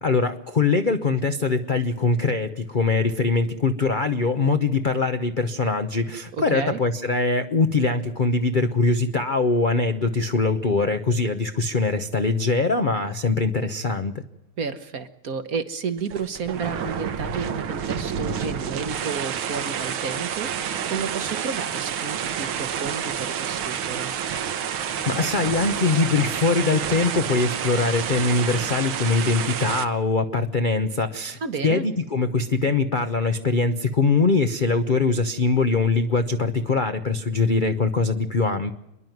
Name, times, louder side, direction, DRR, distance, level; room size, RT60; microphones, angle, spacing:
voice 1, 0.0-14.1 25.1-38.7, left 3 dB, 65° left, 7 dB, 0.4 m, -22 dB
voice 2, 6.3-6.8 14.6-24.1 31.4-31.8, right 5 dB, 50° right, 11 dB, 1.2 m, -31 dB
sound 1, 16.0-29.8, right 8 dB, 75° right, 1.9 m, -29 dB
28.0 x 11.0 x 9.2 m, 0.85 s
omnidirectional pair, 2.3 m